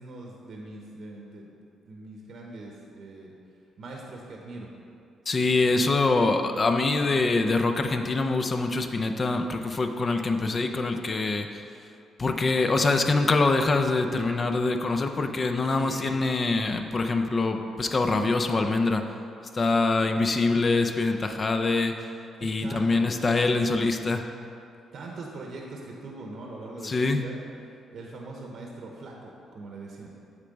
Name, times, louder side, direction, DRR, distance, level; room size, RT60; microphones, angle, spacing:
voice 1, 0.0-1.5 1.9-3.3 3.8-4.7 15.7-16.2 22.4-23.2 24.9-27.4 27.9-30.1, right 2 dB, 60° right, -1 dB, 0.8 m, -41 dB
voice 2, 5.3-11.6 12.2-19.1 19.5-21.9 22.4-24.3 26.8-27.2, left 3 dB, 35° left, 6 dB, 0.5 m, -24 dB
8.2 x 3.4 x 5.2 m, 2.6 s
cardioid pair, 90°, 0 cm